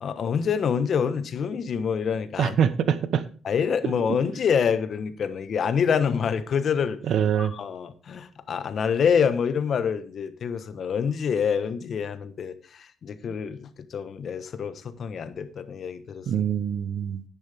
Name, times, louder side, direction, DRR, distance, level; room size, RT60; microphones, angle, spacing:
voice 1, 0.0-2.5 3.4-7.0 7.4-16.3, left 7 dB, 55° left, 11 dB, 1.3 m, -26 dB
voice 2, 2.4-3.2 7.0-7.5 16.3-17.2, right 8 dB, 70° right, 13 dB, 1.0 m, -24 dB
10.5 x 10.5 x 3.6 m, 0.41 s
cardioid pair, 90°, 0 cm